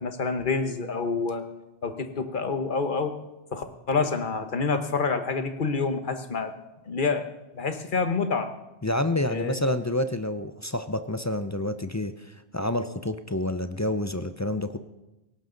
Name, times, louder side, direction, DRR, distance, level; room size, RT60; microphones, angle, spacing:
voice 1, 0.0-1.4 1.8-3.1 3.5-6.5 6.8-8.5 9.3-9.5, left 4 dB, 50° left, 8 dB, 1.3 m, -27 dB
voice 2, 8.8-14.8, left 1 dB, 20° left, 10 dB, 0.5 m, -28 dB
18.0 x 17.5 x 3.9 m, 1.0 s
omnidirectional pair, 1.1 m